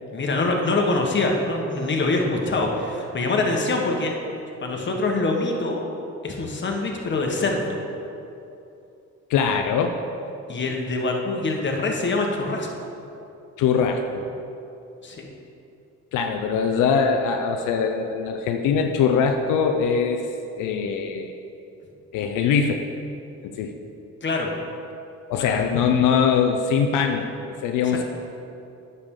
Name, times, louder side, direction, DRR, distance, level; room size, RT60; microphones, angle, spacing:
voice 1, 0.1-4.1 4.6-5.8 6.2-7.8 10.5-12.7 15.0-15.3 24.2-24.5 25.4-25.5, left 2 dB, 40° left, 1 dB, 1.3 m, -24 dB
voice 2, 9.3-10.0 13.6-14.3 16.1-20.3 20.6-21.3 22.1-22.9 23.4-23.7 25.3-28.0, left 6 dB, 90° left, 4 dB, 0.6 m, -22 dB
9.5 x 6.9 x 3.8 m, 2.7 s
cardioid pair, 90°, 30 cm